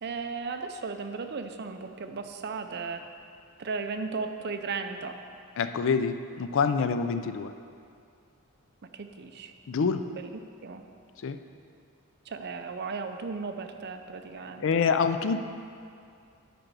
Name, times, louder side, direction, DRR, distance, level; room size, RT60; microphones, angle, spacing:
voice 1, 0.0-3.0 3.6-5.2 8.9-9.5 10.1-10.8 12.3-14.6, right 4 dB, 50° right, 7 dB, 0.5 m, -36 dB
voice 2, 5.6-7.5 9.7-10.0 11.2-11.4 14.6-15.4, left 5 dB, 60° left, 10 dB, 0.4 m, -26 dB
9.1 x 5.2 x 6.2 m, 2.4 s
head